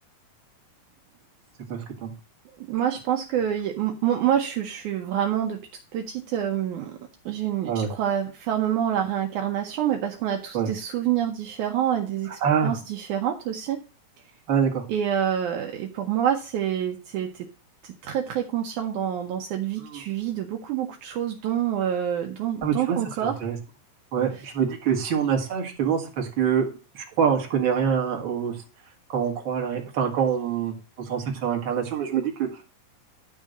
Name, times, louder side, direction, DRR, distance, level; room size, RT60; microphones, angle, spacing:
voice 1, 1.7-2.1 7.7-7.9 10.5-10.7 12.3-12.8 14.5-14.8 19.8-20.0 22.6-23.6 24.1-26.7 26.9-28.6 29.1-32.6, right 7 dB, 45° right, 1 dB, 2.2 m, -25 dB
voice 2, 2.6-5.6 5.9-7.0 7.3-13.8 14.9-17.5 17.8-23.3, right 10 dB, 75° right, 3 dB, 2.1 m, -27 dB
11.0 x 3.7 x 6.4 m, 0.34 s
omnidirectional pair, 3.8 m